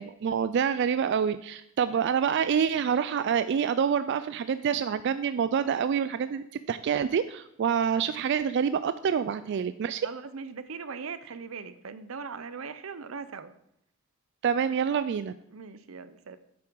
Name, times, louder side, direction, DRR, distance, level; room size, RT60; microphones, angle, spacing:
voice 1, 0.0-10.1 14.4-15.3, right 7 dB, 60° right, 13 dB, 0.3 m, -27 dB
voice 2, 10.0-13.5 15.5-16.4, right 5 dB, 85° right, 13 dB, 0.7 m, -40 dB
8.7 x 7.0 x 4.6 m, 0.77 s
head